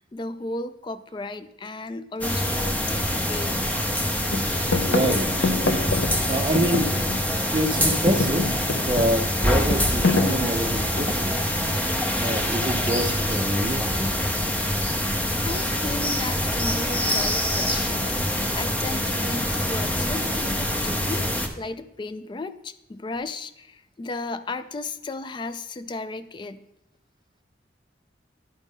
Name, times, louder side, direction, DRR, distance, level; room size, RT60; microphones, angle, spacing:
voice 1, 0.0-3.6 15.4-26.6, left 2 dB, 25° left, 13 dB, 0.3 m, -34 dB
sound 1, 1.6-1.9 2.2-2.4 3.1-3.7 4.0-4.1 4.4-4.6 5.0-5.1 5.5-7.4 7.7-8.1, left 3 dB, 45° left, 1.0 m, -41 dB
sound 2, 2.2-21.5, equal, 10° left, 0.7 m, -25 dB
sound 3, 3.0-3.1 3.4-4.0 4.3-7.5 7.7-11.4 12.3-12.8, left 3 dB, 75° left, 0.6 m, -27 dB
voice 2, 4.6-5.5 6.3-6.9 7.5-8.5 8.7-11.4 12.2-14.1, right 1 dB, 25° right, 8 dB, 0.5 m, -26 dB
11.0 x 5.2 x 3.6 m, 0.89 s
head